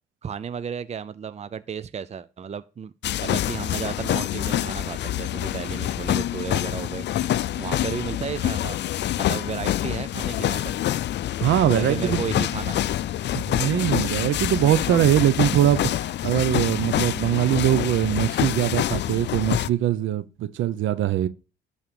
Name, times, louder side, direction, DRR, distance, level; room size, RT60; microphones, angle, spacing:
voice 1, 0.2-2.9 3.2-8.8 9.1-10.8 11.7-12.9, right 7 dB, 35° right, 0.6 m, -33 dB
sound 1, 3.0-19.7, left 12 dB, 60° left, 0.5 m, -26 dB
voice 2, 11.4-12.2 13.3-15.9 16.2-21.3, right 12 dB, 80° right, 0.9 m, -22 dB
11.5 x 4.3 x 7.0 m
cardioid pair, 90°, 20 cm